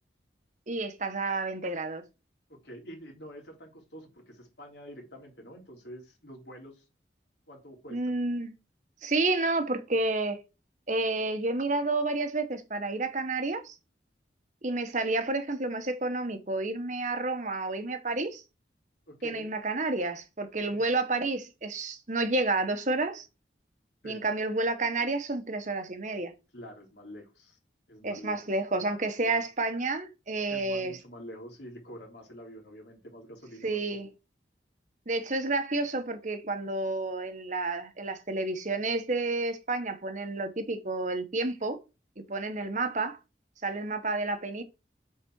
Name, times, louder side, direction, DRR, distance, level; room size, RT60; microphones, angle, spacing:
voice 1, 0.7-2.0 7.9-8.5 9.0-10.4 10.9-13.7 14.6-18.4 19.2-23.3 24.0-26.3 28.0-31.0 33.6-34.1 35.1-41.8 42.3-43.2 43.6-44.6, right 2 dB, 45° right, 1.2 m, -30 dB
voice 2, 2.5-6.9 7.5-8.2 19.1-19.5 20.7-20.9 24.0-24.3 26.5-27.6 27.9-28.5 29.2-29.4 30.5-34.1, equal, 75° left, 3.5 m, -47 dB
8.3 x 4.2 x 4.6 m
head